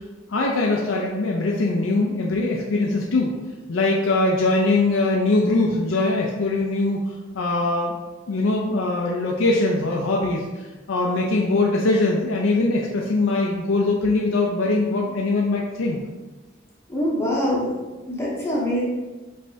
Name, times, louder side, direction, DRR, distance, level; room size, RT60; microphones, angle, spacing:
voice 1, 0.3-3.3 3.7-7.0 7.3-7.9 8.3-10.4 10.9-16.0, left 2 dB, 75° left, -1 dB, 0.5 m, -21 dB
voice 2, 16.9-17.7 18.1-18.8, equal, 15° left, -6 dB, 0.9 m, -24 dB
5.3 x 3.3 x 2.7 m, 1.2 s
head